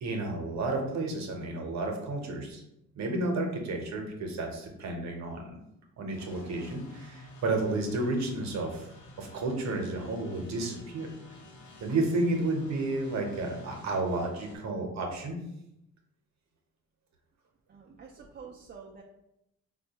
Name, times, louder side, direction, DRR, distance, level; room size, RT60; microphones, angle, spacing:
voice 1, 0.0-2.6 2.9-5.6 6.0-8.9 9.2-11.1 11.8-15.4, right 2 dB, 65° right, 2 dB, 0.9 m, -31 dB
sound 1, 6.1-14.6, left 1 dB, 85° left, 0.8 m, -51 dB
voice 2, 17.7-19.0, right 5 dB, 35° right, -1 dB, 0.4 m, -48 dB
4.1 x 2.3 x 2.8 m, 0.82 s
cardioid pair, 90°, 30 cm